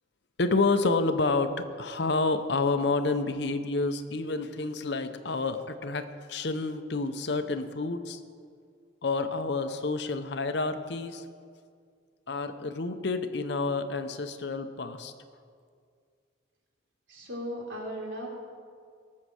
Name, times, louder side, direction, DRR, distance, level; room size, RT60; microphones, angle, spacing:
voice 1, 0.4-8.2 9.0-11.2 12.3-15.1, left 3 dB, 60° left, 9 dB, 0.7 m, -29 dB
voice 2, 17.1-18.3, equal, 80° right, -2 dB, 3.3 m, -36 dB
18.5 x 7.5 x 6.3 m, 2.1 s
head